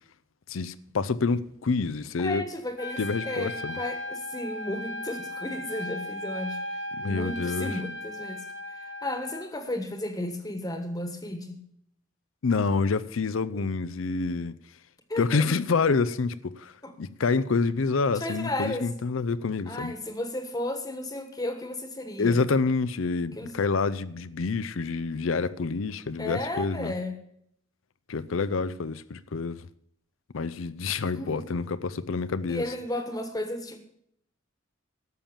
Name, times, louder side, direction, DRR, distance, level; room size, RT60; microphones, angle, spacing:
voice 1, 0.5-2.4 3.0-3.8 7.0-7.8 12.4-14.6 15.2-16.7 17.0-19.9 22.2-26.9 28.1-29.7 30.3-32.6, left 4 dB, 85° left, 0.6 m, -27 dB
voice 2, 2.2-11.6 15.1-15.8 16.8-16.9 18.1-18.9 19.7-22.5 23.4-23.5 26.2-27.2 31.1-31.4 32.5-33.8, left 1 dB, 20° left, 1.3 m, -34 dB
Trumpet, 2.8-9.5, left 1 dB, 60° left, 1.2 m, -37 dB
12.5 x 7.3 x 7.3 m
head